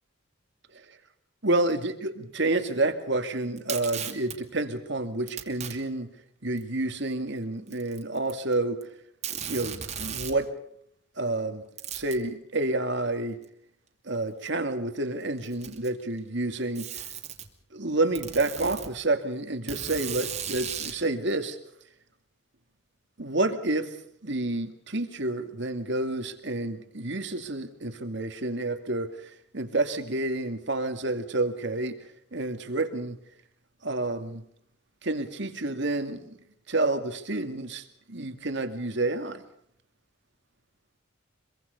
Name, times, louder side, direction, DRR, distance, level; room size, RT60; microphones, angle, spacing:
voice 1, 1.4-6.1 6.4-8.8 9.5-10.5 11.2-11.6 11.9-13.4 14.0-16.9 17.7-21.6 23.2-24.0 24.2-32.0 32.3-33.2 33.8-34.4 35.0-36.3 36.7-39.4, right 2 dB, 60° right, 7 dB, 2.3 m, -29 dB
Packing tape duct tape, 3.6-4.4 5.3-5.7 6.6-6.7 7.7-8.5 8.8-8.9 9.2-10.4 11.8-12.2 13.4-13.5 14.5-14.6 15.4-16.0 16.7-17.5 18.1-18.9 19.7-21.0, right 8 dB, 35° right, 2.5 m, -36 dB
25.0 x 23.0 x 5.4 m, 0.70 s
head